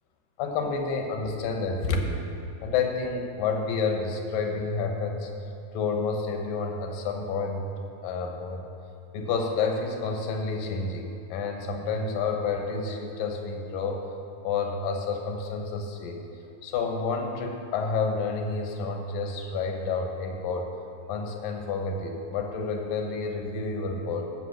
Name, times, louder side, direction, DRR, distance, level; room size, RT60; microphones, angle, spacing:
voice 1, 0.4-2.3 2.6-5.3 5.7-7.7 8.0-8.7 9.1-14.0 14.4-16.2 16.6-20.7 21.1-24.2, left 4 dB, 80° left, 3 dB, 2.9 m, -29 dB
15.5 x 6.6 x 6.5 m, 2.7 s
omnidirectional pair, 3.9 m